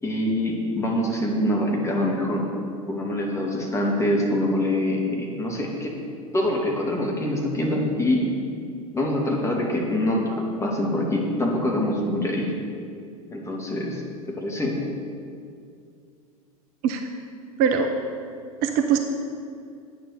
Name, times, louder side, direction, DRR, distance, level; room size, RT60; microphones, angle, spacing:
voice 1, 0.0-2.4 2.9-5.9 6.3-8.2 8.9-12.5 13.3-14.0 14.3-14.7, left 1 dB, 15° left, -1 dB, 2.4 m, -24 dB
voice 2, 17.6-17.9 18.6-19.0, right 7 dB, 50° right, 5 dB, 0.9 m, -21 dB
9.5 x 7.1 x 6.7 m, 2.4 s
figure-of-eight pair, 80°, 19 cm